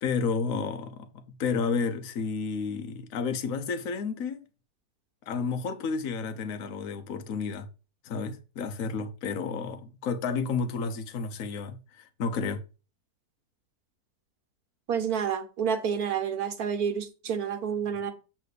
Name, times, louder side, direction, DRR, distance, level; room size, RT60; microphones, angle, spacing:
voice 1, 0.0-4.5 5.3-7.7 8.0-12.6, left 5 dB, 65° left, 1.2 m, -31 dB
voice 2, 14.9-18.1, right 7 dB, 70° right, 1.7 m, -29 dB
8.3 x 3.4 x 6.6 m
omnidirectional pair, 1.7 m